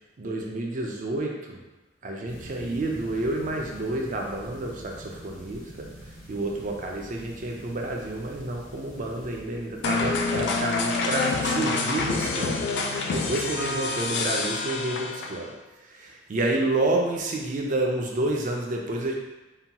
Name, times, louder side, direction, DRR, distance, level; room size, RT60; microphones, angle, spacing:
voice 1, 0.2-1.6 2.0-5.9 6.3-12.6 13.1-15.5 15.8-19.1, right 2 dB, 45° right, 0 dB, 0.4 m, -29 dB
sound 1, 2.3-11.3, equal, 85° left, 0.9 m, -46 dB
sound 2, 9.8-15.5, left 3 dB, 65° left, 0.3 m, -27 dB
2.8 x 2.2 x 2.8 m, 1.1 s
head